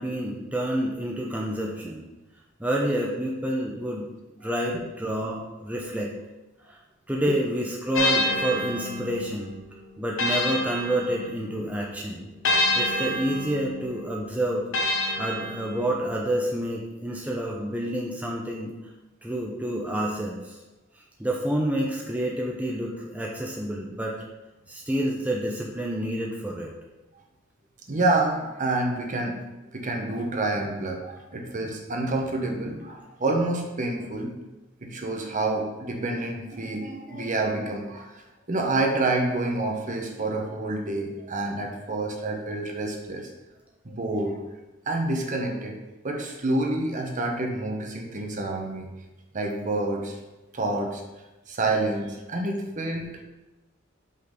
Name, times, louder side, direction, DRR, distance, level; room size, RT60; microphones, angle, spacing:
voice 1, 0.0-2.0 2.6-6.1 6.7-6.8 7.1-9.5 10.0-12.3 12.7-14.7 15.2-18.7 19.2-20.6 21.2-24.2 24.7-26.7, right 1 dB, 5° right, -2 dB, 0.6 m, -28 dB
sound 1, 7.9-11.7 12.4-16.1, left 2 dB, 75° left, 1.0 m, -28 dB
voice 2, 27.9-29.4 29.7-34.3 34.8-43.3 43.8-44.4 44.9-45.8 46.0-48.9 49.3-50.2 50.5-51.0 51.5-53.2, right 2 dB, 40° right, 2 dB, 0.9 m, -28 dB
5.6 x 3.9 x 5.1 m, 1.1 s
head